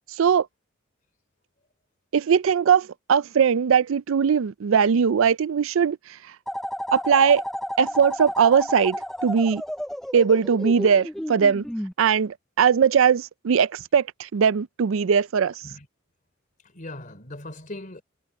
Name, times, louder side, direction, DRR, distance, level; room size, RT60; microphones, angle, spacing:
voice 1, 2.1-6.0 6.9-7.4 7.8-9.6 10.1-11.6 12.0-15.5, right 7 dB, 75° right, 0.4 m, -20 dB
sound 1, 6.5-11.9, equal, ahead, 0.5 m, -32 dB
voice 2, 16.6-18.0, left 1 dB, 40° left, 3.6 m, -39 dB
head